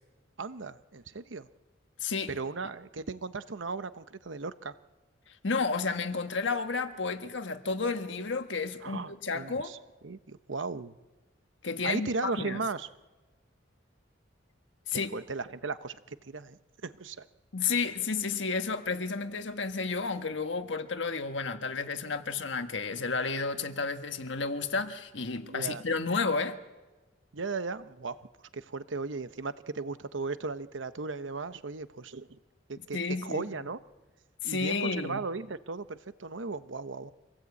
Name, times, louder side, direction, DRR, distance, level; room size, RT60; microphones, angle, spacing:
voice 1, 0.4-1.5 2.3-4.8 8.8-9.8 10.0-10.9 11.8-12.9 14.9-17.3 25.4-25.8 27.3-28.2 28.5-32.4 32.7-33.8 34.4-37.1, right 3 dB, 85° right, 0.9 m, -36 dB
voice 2, 2.0-2.3 5.3-9.7 11.6-12.6 14.9-15.1 17.5-26.5 32.9-33.7 34.4-35.2, left 4 dB, 75° left, 1.5 m, -32 dB
25.5 x 18.0 x 8.4 m
head